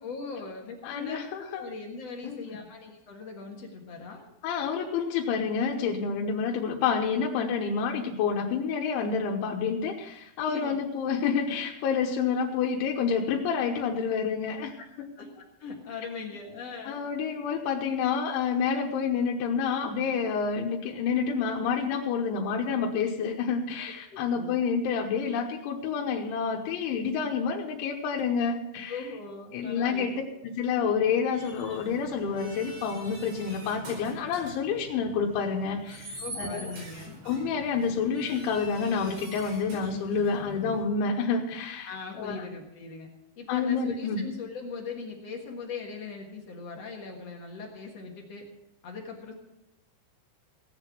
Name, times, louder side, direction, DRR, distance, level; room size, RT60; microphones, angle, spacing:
voice 1, 0.0-1.2 1.5-4.2 10.4-10.8 15.2-17.0 24.1-24.6 28.9-30.3 36.2-37.2 41.8-43.1 43.4-48.4 48.8-49.3, left 4 dB, 60° left, 0 dB, 1.7 m, -40 dB
voice 2, 0.8-1.6 2.2-2.6 4.4-14.8 16.8-29.0 29.5-30.1 30.4-36.7 37.3-42.5 43.5-44.2, left 6 dB, 90° left, -1 dB, 3.4 m, -28 dB
sound 1, 31.3-40.8, right 1 dB, 90° right, 7.3 m, -44 dB
17.5 x 7.8 x 5.9 m, 0.85 s
omnidirectional pair, 5.3 m